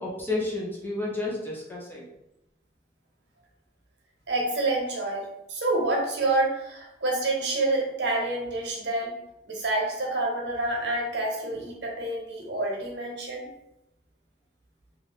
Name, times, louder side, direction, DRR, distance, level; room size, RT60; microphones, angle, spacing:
voice 1, 0.0-2.0, left 2 dB, 10° left, -4 dB, 0.6 m, -31 dB
voice 2, 4.3-9.2 9.5-13.5, right 2 dB, 80° right, -1 dB, 0.9 m, -28 dB
2.6 x 2.4 x 3.4 m, 0.87 s
head